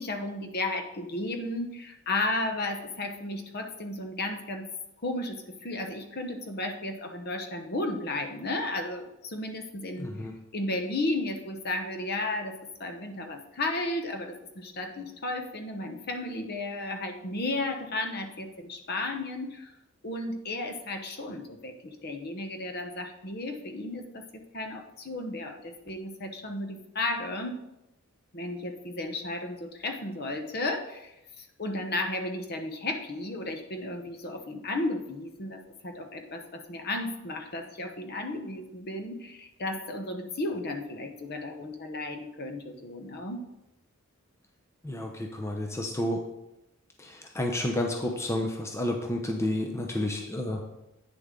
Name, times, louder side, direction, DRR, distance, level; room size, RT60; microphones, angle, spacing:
voice 1, 0.0-4.7 5.0-10.3 10.5-19.7 20.0-27.6 28.3-43.5, left 2 dB, 45° left, 5 dB, 0.9 m, -34 dB
voice 2, 10.0-10.3 44.8-46.2 47.0-50.6, left 1 dB, 10° left, 2 dB, 0.7 m, -30 dB
9.0 x 6.8 x 3.8 m, 0.90 s
head